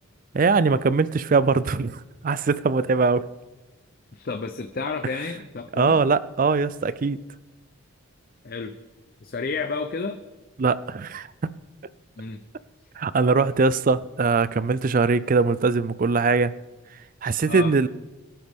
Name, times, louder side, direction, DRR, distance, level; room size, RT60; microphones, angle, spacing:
voice 1, 0.3-3.3 5.8-7.2 10.6-11.3 13.0-16.5 17.2-17.9, right 4 dB, 40° right, 0.4 m, -21 dB
voice 2, 4.1-6.0 8.4-8.7 9.2-10.2 12.2-12.4 17.5-17.7, left 4 dB, 45° left, 0.6 m, -31 dB
22.5 x 10.0 x 3.6 m
head